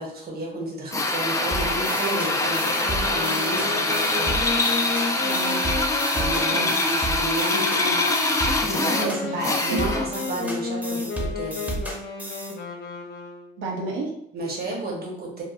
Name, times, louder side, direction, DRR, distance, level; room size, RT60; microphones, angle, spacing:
voice 1, 0.0-4.4 6.1-11.6 14.3-15.4, right 1 dB, 50° right, -2 dB, 1.0 m, -32 dB
Drill, 0.9-10.2, left 2 dB, 15° left, 0.4 m, -24 dB
sound 1, 1.5-12.5, right 1 dB, 5° right, 0.8 m, -33 dB
Wind instrument woodwind instrument, 2.1-13.8, left 4 dB, 55° left, 0.6 m, -33 dB
voice 2, 5.2-5.7 6.5-6.7 8.6-9.4 9.7-9.9 13.6-14.1, right 3 dB, 85° right, 0 dB, 0.7 m, -31 dB
3.2 x 2.2 x 2.4 m, 0.73 s
cardioid pair, 90°, 20 cm